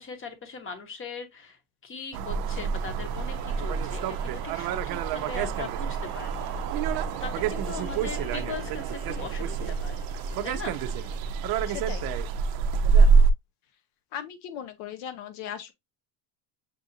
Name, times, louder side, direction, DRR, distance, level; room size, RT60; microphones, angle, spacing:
voice 1, 0.0-10.0 10.4-10.8, left 5 dB, 25° left, 1.1 m, -40 dB
sound 1, 2.1-13.3, right 5 dB, 50° right, 0.5 m, -26 dB
sound 2, 3.0-11.6, left 4 dB, 55° left, 2.2 m, -53 dB
voice 2, 11.7-12.1 13.7-13.8 14.1-15.7, left 9 dB, 75° left, 0.8 m, -38 dB
7.1 x 2.5 x 2.6 m
cardioid pair, 125°, 47 cm